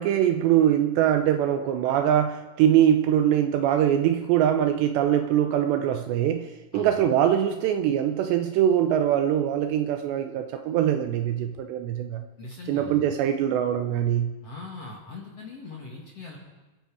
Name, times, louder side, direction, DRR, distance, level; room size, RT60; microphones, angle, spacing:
voice 1, 0.0-12.2 12.7-14.3, right 10 dB, 80° right, 7 dB, 2.6 m, -23 dB
voice 2, 12.4-13.0 14.4-16.4, left 3 dB, 50° left, -2 dB, 2.1 m, -40 dB
28.0 x 10.5 x 4.8 m, 1.1 s
omnidirectional pair, 5.6 m